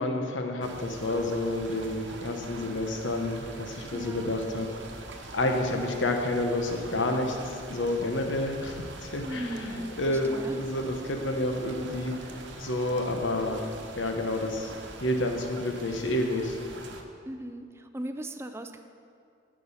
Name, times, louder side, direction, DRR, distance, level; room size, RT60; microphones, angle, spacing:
voice 1, 0.0-4.7 5.3-12.3 12.6-13.6 13.9-14.7 15.0-16.6, left 1 dB, 85° left, 4 dB, 1.0 m, -29 dB
sound 1, 0.6-17.0, right 2 dB, 75° right, 0.9 m, -44 dB
voice 2, 3.9-4.3 9.3-10.6 17.3-18.8, right 1 dB, 15° right, 7 dB, 0.4 m, -38 dB
12.0 x 5.4 x 5.6 m, 2.4 s
head